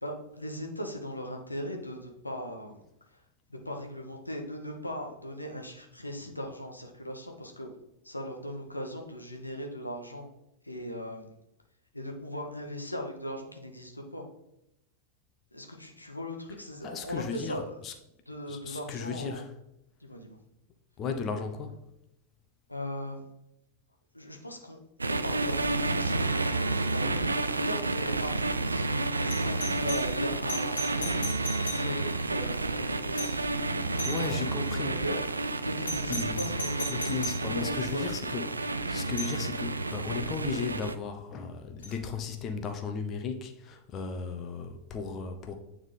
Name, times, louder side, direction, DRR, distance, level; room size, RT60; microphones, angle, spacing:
voice 1, 0.0-2.8 3.5-7.7 8.0-10.3 10.6-11.3 11.9-14.3 15.5-17.7 18.3-19.4 20.0-20.4 22.7-23.2 24.1-24.8 25.1-33.9 34.2-35.2 35.6-37.1 37.5-38.1, equal, 85° left, 1.0 m, -39 dB
voice 2, 16.8-17.9 18.5-19.5 21.0-21.8 33.8-35.0 36.1-36.4 36.9-45.5, left 5 dB, 30° left, 0.7 m, -36 dB
sound 1, 25.0-41.0, right 2 dB, 80° right, 0.4 m, -30 dB
Doorbell, 29.3-32.3 33.1-33.5 34.0-34.5 35.8-37.5 39.2-39.4 41.8-41.9, equal, 70° left, 1.3 m, -38 dB
9.0 x 3.7 x 3.3 m
figure-of-eight pair, 90°, 0 cm